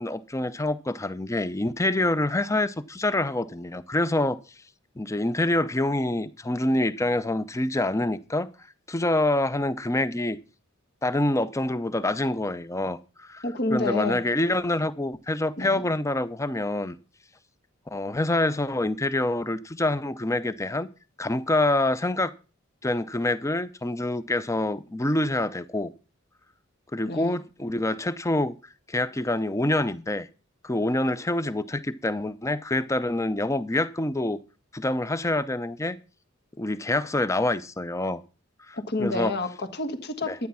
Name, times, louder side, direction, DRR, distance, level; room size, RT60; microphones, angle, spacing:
voice 1, 0.0-4.4 5.0-8.5 8.9-10.4 11.0-13.4 13.7-17.0 17.9-20.9 21.2-22.3 22.8-25.9 26.9-28.5 28.9-30.3 30.6-34.4 34.7-36.0 36.6-38.2 38.7-39.3 40.3-40.4, left 1 dB, 15° left, 0.6 m, -26 dB
voice 2, 13.4-14.2 15.6-15.8 27.0-27.4 38.7-40.5, left 2 dB, 50° left, 1.5 m, -29 dB
12.0 x 9.4 x 5.6 m
head